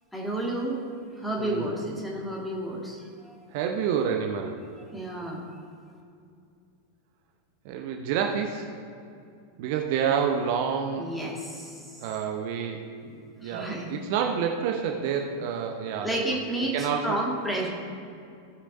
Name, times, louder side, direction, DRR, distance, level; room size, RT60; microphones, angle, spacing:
voice 1, 0.1-0.8 1.2-3.4 4.9-5.4 11.0-12.0 13.4-13.9 16.0-17.7, right 1 dB, 5° left, -2 dB, 1.9 m, -31 dB
voice 2, 3.5-4.6 7.6-8.7 9.6-11.1 12.0-16.2 16.7-17.2, right 7 dB, 50° right, 3 dB, 0.7 m, -28 dB
16.5 x 6.5 x 2.6 m, 2.4 s
figure-of-eight pair, 90°, 0 cm